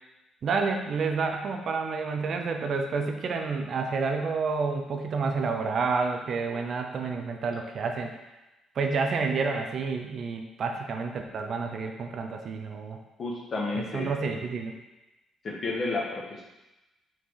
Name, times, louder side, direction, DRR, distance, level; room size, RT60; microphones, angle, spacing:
voice 1, 0.4-8.1 8.8-13.0 13.7-14.7, right 4 dB, 45° right, 4 dB, 0.6 m, -29 dB
voice 2, 13.2-14.1 15.4-16.4, left 3 dB, 35° left, -2 dB, 1.4 m, -31 dB
5.7 x 4.4 x 4.7 m, 1.0 s
cardioid pair, 160°, 0 cm